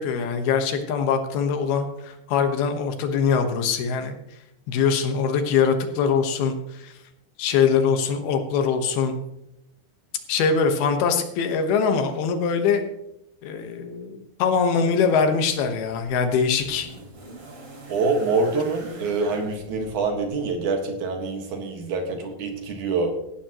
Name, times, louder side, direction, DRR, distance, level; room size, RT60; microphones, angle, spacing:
voice 1, 0.0-4.2 4.7-6.9 7.4-9.2 10.3-12.9 13.4-16.9, left 6 dB, 85° left, 6 dB, 3.2 m, -23 dB
sound 1, 15.5-20.7 21.8-21.9, right 1 dB, 40° right, 4.2 m, -44 dB
voice 2, 17.9-23.1, right 3 dB, 60° right, 4 dB, 2.8 m, -25 dB
16.0 x 13.0 x 3.0 m, 0.85 s
omnidirectional pair, 4.3 m